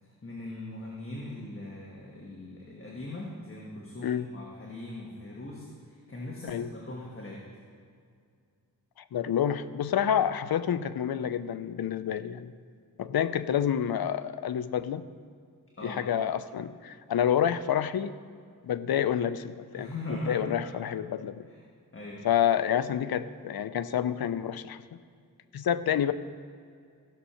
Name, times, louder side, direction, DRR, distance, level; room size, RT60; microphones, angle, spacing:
voice 1, 0.0-7.4 15.8-16.0 19.7-20.7 21.5-21.6 21.9-22.3, left 1 dB, 35° left, -3 dB, 1.5 m, -40 dB
voice 2, 9.1-12.5 13.0-15.1 15.8-18.1 18.6-21.5 22.2-24.8 25.5-26.1, left 9 dB, 75° left, 13 dB, 0.5 m, -28 dB
15.0 x 6.5 x 5.7 m, 2.2 s
wide cardioid pair, 130°, 37 cm